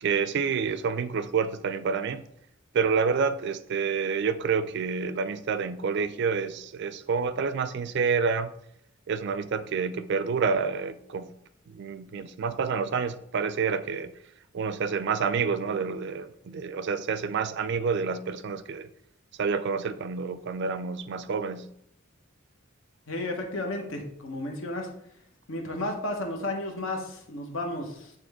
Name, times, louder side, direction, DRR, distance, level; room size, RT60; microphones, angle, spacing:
voice 1, 0.0-2.2 2.7-8.6 9.1-11.3 11.7-14.1 14.5-18.9 19.4-21.7, right 5 dB, 55° right, 0.4 m, -28 dB
voice 2, 23.1-24.9 25.5-28.1, left 1 dB, 70° left, 1.1 m, -33 dB
8.5 x 3.3 x 3.5 m
head